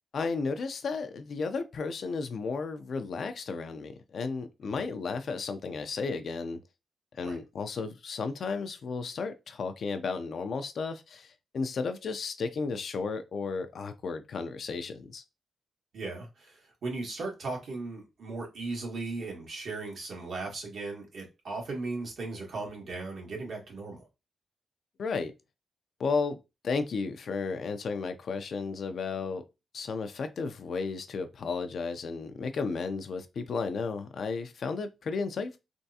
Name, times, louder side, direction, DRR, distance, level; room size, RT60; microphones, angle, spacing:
voice 1, 0.1-6.6 7.1-15.2 25.0-25.3 26.0-26.4 26.6-29.5 29.7-35.6, left 4 dB, 60° left, 0.5 m, -33 dB
voice 2, 15.9-24.1, right 3 dB, 65° right, 1.7 m, -37 dB
3.5 x 3.1 x 2.8 m
wide cardioid pair, 125°, 0 cm